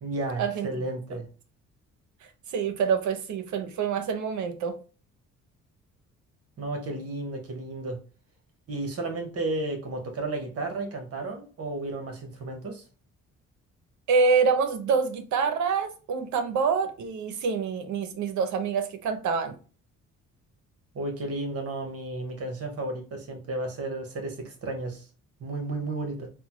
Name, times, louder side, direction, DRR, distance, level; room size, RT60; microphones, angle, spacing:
voice 1, 0.0-1.3 6.6-8.0 8.7-12.8 20.9-25.0 25.4-26.3, right 2 dB, 50° right, 1.1 m, -33 dB
voice 2, 2.5-4.8 14.1-19.6, right 5 dB, 70° right, 0.7 m, -26 dB
3.7 x 2.1 x 3.0 m
cardioid pair, 90°, 30 cm